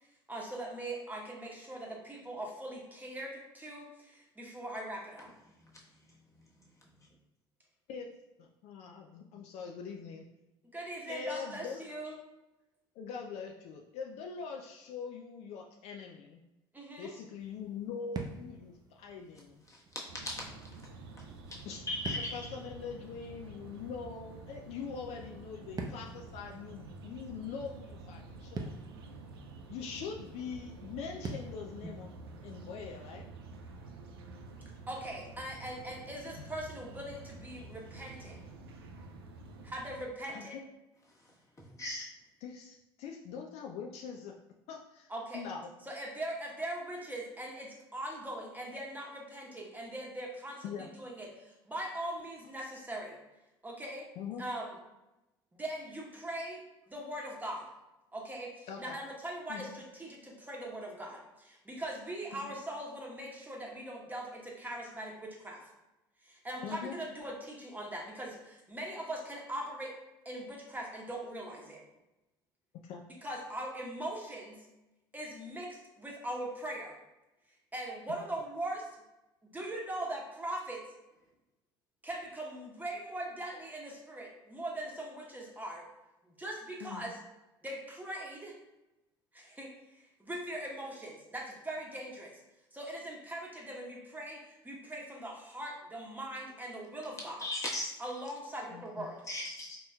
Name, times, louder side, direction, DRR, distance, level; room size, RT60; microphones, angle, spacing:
voice 1, 0.3-5.3 10.7-12.1 16.7-17.1 34.9-38.4 39.6-40.6 45.1-45.4 45.9-53.2 53.6-54.1 54.4-54.7 55.5-57.6 58.1-65.7 66.2-69.9 70.2-71.8 73.2-74.7 75.1-77.0 77.7-78.9 79.5-80.8 82.0-85.9 86.2-87.2 87.6-88.5 89.3-92.4 92.7-97.5 98.0-99.2, right 1 dB, 15° right, -2 dB, 1.0 m, -41 dB
voice 2, 8.4-10.2 11.1-11.8 13.0-16.4 17.0-19.6 21.7-21.8 22.3-28.7 29.7-32.1 32.4-33.3 40.3-40.6 42.4-44.4 44.7-45.1 45.3-45.7 50.6-50.9 54.2-54.4 58.7-59.0 59.5-59.7 62.4-62.5 66.6-66.9 72.8-73.0 78.1-78.2 86.8-87.1 98.7-99.1, left 6 dB, 60° left, 1 dB, 0.4 m, -43 dB
sound 1, 17.4-33.2, right 3 dB, 30° right, 0.6 m, -48 dB
sound 2, 20.1-40.0, right 3 dB, 85° right, 0.4 m, -49 dB
voice 3, 21.9-22.5 41.6-42.1 97.4-97.9 99.3-99.8, left 1 dB, 25° left, -4 dB, 1.2 m, -37 dB
4.0 x 2.8 x 2.3 m, 0.97 s
hypercardioid pair, 60°, 13 cm